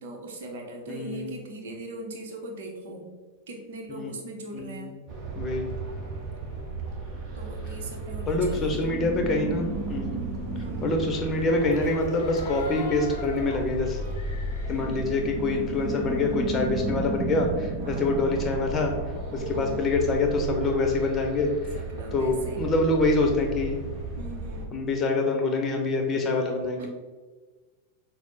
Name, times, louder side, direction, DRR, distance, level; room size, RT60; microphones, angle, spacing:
voice 1, 0.0-3.1 3.5-4.9 7.3-8.8 10.5-10.9 12.8-13.0 14.7-15.1 17.8-18.2 19.4-19.8 21.7-22.7 24.2-24.8 26.8-26.9, right 2 dB, 55° right, 1 dB, 0.9 m, -40 dB
voice 2, 0.9-1.4 3.9-4.1 4.5-4.9 5.3-5.7 8.3-10.2 10.8-14.0 14.7-18.9 19.5-21.7 22.1-23.8 24.7-26.9, left 2 dB, 20° left, 3 dB, 0.9 m, -26 dB
sound 1, 5.1-24.7, right 3 dB, 30° right, 1.0 m, -33 dB
sound 2, 11.5-16.1 16.4-17.5, left 3 dB, 65° left, 0.6 m, -42 dB
6.2 x 2.1 x 4.1 m, 1.3 s
figure-of-eight pair, 90°, 0 cm